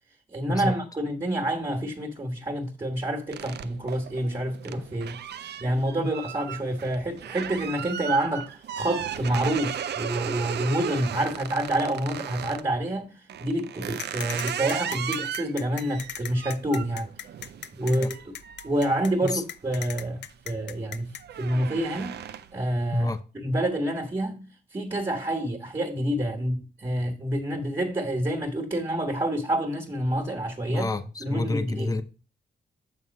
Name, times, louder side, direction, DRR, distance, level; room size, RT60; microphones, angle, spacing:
voice 1, 0.3-5.2 5.6-13.1 13.4-17.1 17.7-18.3 18.6-22.2 22.5-24.5 24.7-30.9 31.2-31.9, right 1 dB, 30° right, 1.4 m, -28 dB
sound 1, 3.3-12.7 13.3-19.7 20.1-20.5 20.8-22.7, right 9 dB, 70° right, 0.5 m, -36 dB
sound 2, 14.0-21.2, left 9 dB, 85° left, 0.5 m, -37 dB
voice 2, 30.7-32.0, left 2 dB, 20° left, 0.7 m, -28 dB
7.6 x 3.6 x 5.3 m
cardioid pair, 90°, 18 cm